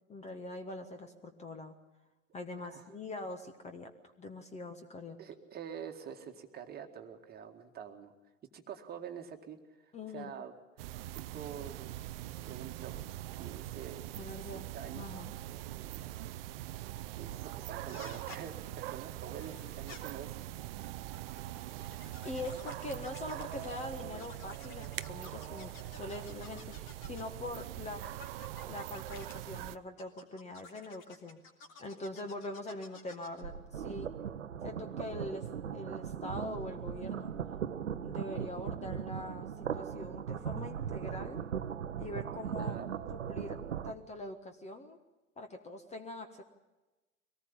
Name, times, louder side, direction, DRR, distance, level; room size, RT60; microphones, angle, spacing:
voice 1, 0.1-1.7 2.3-3.9 4.2-5.2 9.9-10.3 14.1-14.6 14.9-15.3 22.2-28.1 28.6-31.4 31.8-34.1 34.6-37.3 38.0-41.4 42.0-42.8 43.1-45.0 45.4-46.4, left 2 dB, 15° left, 7 dB, 1.5 m, -43 dB
voice 2, 5.2-8.1 8.5-9.6 9.8-10.6 11.1-12.0 12.5-12.9 13.4-15.1 15.5-16.1 17.2-17.3 17.7-20.4 20.8-21.0 21.3-21.6 42.5-42.9, right 8 dB, 25° right, 5 dB, 1.9 m, -46 dB
sound 1, 10.8-29.8, right 14 dB, 45° right, 0.7 m, -43 dB
sound 2, 17.9-18.4 19.4-20.0 21.0-23.8 24.1-27.4 28.0-29.3 30.0-33.4, left 4 dB, 50° left, 3.3 m, -53 dB
sound 3, 33.4-43.9, right 8 dB, 70° right, 1.0 m, -39 dB
24.0 x 18.5 x 7.1 m, 1.1 s
figure-of-eight pair, 90°, 39 cm